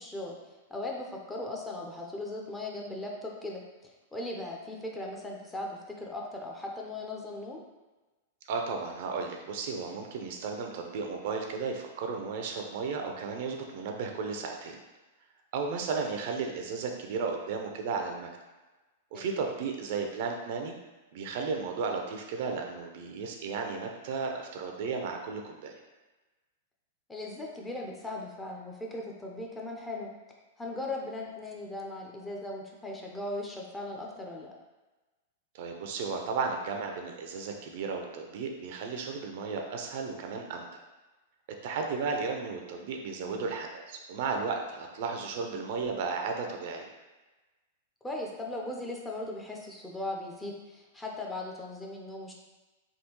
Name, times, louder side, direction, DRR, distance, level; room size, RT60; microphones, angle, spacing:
voice 1, 0.0-7.6 19.1-19.2 27.1-30.1 30.6-34.5 43.2-43.5 48.0-52.3, left 2 dB, 10° left, -1 dB, 0.6 m, -38 dB
voice 2, 8.5-14.8 15.5-18.3 19.1-20.7 21.1-25.8 35.5-40.8 41.6-46.9, right 4 dB, 60° right, 3 dB, 0.5 m, -34 dB
3.5 x 2.3 x 3.0 m, 1.2 s
hypercardioid pair, 115°, 0 cm